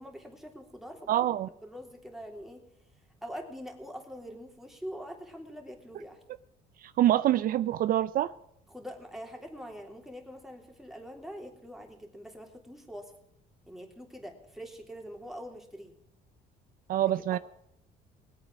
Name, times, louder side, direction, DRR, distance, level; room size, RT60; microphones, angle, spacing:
voice 1, 0.0-1.1 1.6-2.6 3.2-6.2 8.7-13.1 13.7-15.9 17.0-17.4, equal, ahead, 3.3 m, -44 dB
voice 2, 1.1-1.5 6.8-8.3 16.9-17.4, right 12 dB, 60° right, 0.5 m, -25 dB
20.0 x 9.0 x 6.3 m
cardioid pair, 110°, 17 cm